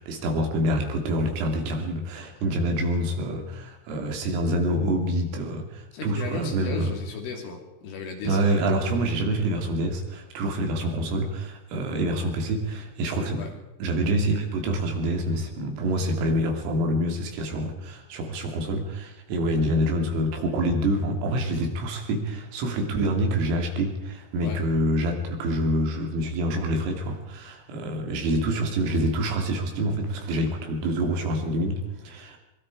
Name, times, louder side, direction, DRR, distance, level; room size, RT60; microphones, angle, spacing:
voice 1, 0.0-6.9 8.2-13.5 13.8-32.4, right 1 dB, 80° right, 3 dB, 5.5 m, -26 dB
voice 2, 5.9-8.6 13.3-13.5 24.4-24.6, left 3 dB, 75° left, 2 dB, 5.9 m, -35 dB
24.5 x 22.5 x 4.9 m, 0.96 s
omnidirectional pair, 5.8 m